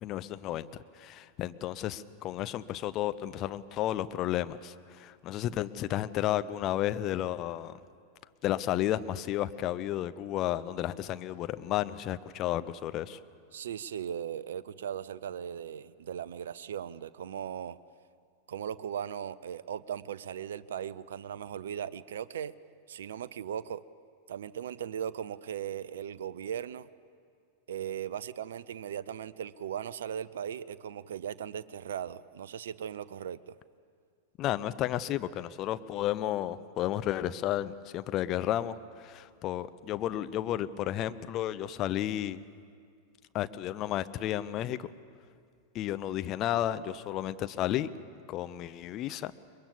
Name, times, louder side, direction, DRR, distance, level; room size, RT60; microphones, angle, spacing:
voice 1, 0.0-0.7 0.9-7.7 8.4-13.2 34.4-42.4 43.3-44.9 45.7-47.9 48.3-49.3, left 12 dB, 35° left, 14 dB, 0.6 m, -32 dB
voice 2, 13.5-17.8 18.5-22.5 22.9-23.8 24.3-26.9 27.7-33.5, right 9 dB, 60° right, 18 dB, 0.5 m, -38 dB
22.5 x 22.0 x 7.1 m, 2.2 s
figure-of-eight pair, 90°, 0 cm